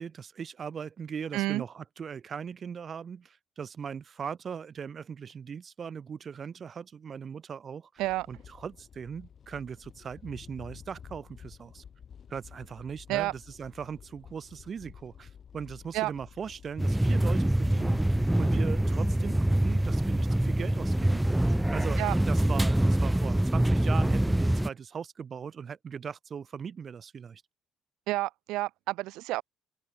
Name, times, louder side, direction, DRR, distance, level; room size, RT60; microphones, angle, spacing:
voice 1, 0.0-7.9 8.3-11.8 12.3-22.0 22.3-27.4, right 7 dB, 50° right, 1.1 m, -39 dB
voice 2, 1.3-1.6 8.0-8.3 13.1-13.3 15.9-16.1 22.0-22.1 28.1-29.4, right 18 dB, 85° right, 0.9 m, -29 dB
sound 1, 8.0-23.0, left 7 dB, 55° left, 5.5 m, -49 dB
sound 2, 16.8-24.7, right 1 dB, 5° right, 0.5 m, -25 dB
open air
supercardioid pair, 65°, 0 cm